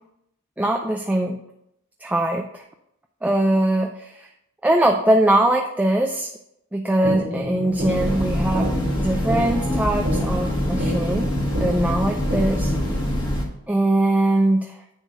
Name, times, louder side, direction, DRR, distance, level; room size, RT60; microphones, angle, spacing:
voice 1, 0.6-1.4 2.0-2.6 3.2-4.3 4.6-6.3 6.7-11.3 11.6-12.7 13.7-14.7, right 1 dB, 5° right, 2 dB, 0.4 m, -21 dB
sound 1, 7.0-13.0, equal, 40° right, 1.4 m, -29 dB
Train, 7.7-13.5, equal, 20° left, 1.4 m, -25 dB
9.8 x 3.3 x 6.6 m, 0.80 s
head